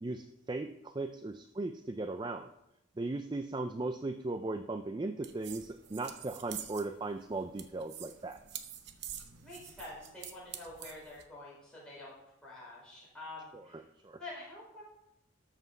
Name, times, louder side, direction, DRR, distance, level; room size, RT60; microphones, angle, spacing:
voice 1, 0.0-2.5 3.0-8.4 14.0-14.2, right 2 dB, 20° right, 8 dB, 0.4 m, -37 dB
sound 1, 5.2-11.2, right 10 dB, 50° right, 0.8 m, -47 dB
voice 2, 9.4-12.1 12.4-13.8 14.2-14.8, left 2 dB, 5° left, -7 dB, 4.8 m, -47 dB
13.5 x 5.8 x 5.5 m, 0.84 s
head